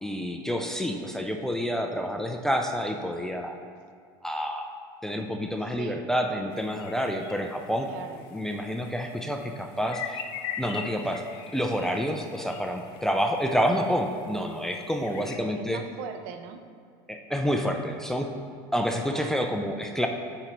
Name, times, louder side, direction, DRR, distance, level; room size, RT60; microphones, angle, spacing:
voice 1, 0.0-3.5 4.2-4.7 5.0-7.9 8.3-10.2 10.6-11.2 11.5-15.8 17.1-18.3 18.7-20.1, equal, 5° left, 3 dB, 0.3 m, -28 dB
sound 1, 6.5-15.4, left 8 dB, 50° left, 0.6 m, -42 dB
voice 2, 7.9-8.2 15.1-15.3 15.6-16.6 19.0-19.4, right 7 dB, 65° right, 7 dB, 0.6 m, -40 dB
8.6 x 4.5 x 3.0 m, 2.1 s
supercardioid pair, 135°, 12 cm